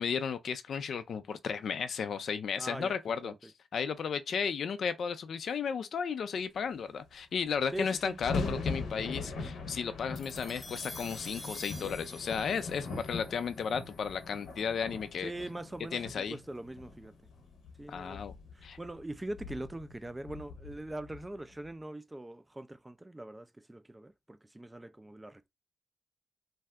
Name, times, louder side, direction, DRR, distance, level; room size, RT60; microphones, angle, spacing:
voice 1, 0.0-15.3 15.9-16.4 17.9-18.3 18.6-18.8, left 6 dB, 65° left, 0.3 m, -34 dB
voice 2, 2.6-3.0 3.2-3.4 7.7-8.2 15.2-17.1 17.8-18.2 18.5-25.5, right 1 dB, 15° right, 0.3 m, -42 dB
sound 1, 7.1-7.2 7.3-21.7, left 3 dB, 80° left, 0.7 m, -41 dB
sound 2, 10.2-14.7, left 1 dB, 15° left, 0.8 m, -48 dB
2.6 x 2.3 x 3.3 m
cardioid pair, 85°, 0 cm